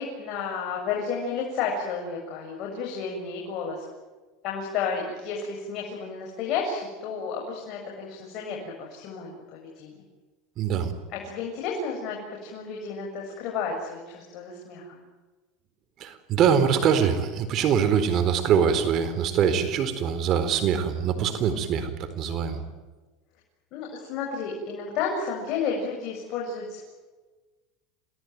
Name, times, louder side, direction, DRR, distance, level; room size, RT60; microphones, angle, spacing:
voice 1, 0.0-3.8 4.4-10.0 11.1-15.0 23.7-26.8, left 5 dB, 55° left, 0 dB, 7.3 m, -32 dB
voice 2, 10.6-10.9 16.0-22.6, right 7 dB, 45° right, 10 dB, 4.1 m, -23 dB
28.0 x 19.0 x 9.5 m, 1.3 s
supercardioid pair, 125°, 0 cm